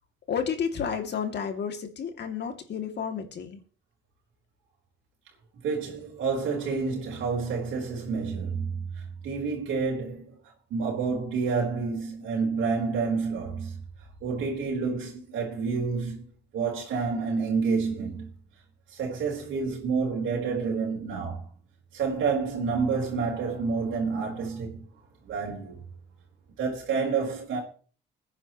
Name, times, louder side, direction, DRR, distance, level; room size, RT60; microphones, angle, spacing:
voice 1, 0.3-3.6, left 7 dB, 60° left, 2.5 m, -31 dB
voice 2, 5.6-10.3 10.7-13.8 14.2-16.2 16.5-18.3 18.9-21.5 21.9-24.8 25.2-25.8 26.6-27.6, right 5 dB, 80° right, 4.1 m, -29 dB
22.0 x 9.9 x 3.1 m
cardioid pair, 90°, 20 cm